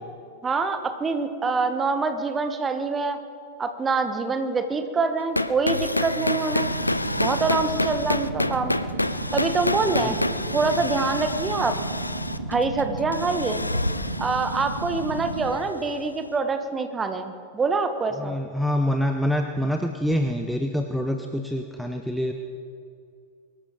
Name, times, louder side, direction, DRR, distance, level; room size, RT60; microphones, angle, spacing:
voice 1, 0.4-3.2 3.6-6.7 7.2-8.8 9.3-11.7 12.5-13.6 14.2-18.3, right 4 dB, 20° right, 8 dB, 1.3 m, -25 dB
sound 1, 5.2-16.0, left 2 dB, 85° left, 0.5 m, -28 dB
sound 2, 6.5-15.5, right 2 dB, 75° right, 1.3 m, -33 dB
voice 2, 9.8-10.2 10.8-10.9 18.1-22.3, equal, ahead, 4 dB, 0.8 m, -26 dB
23.5 x 13.5 x 3.8 m, 2.3 s
figure-of-eight pair, 90°, 0 cm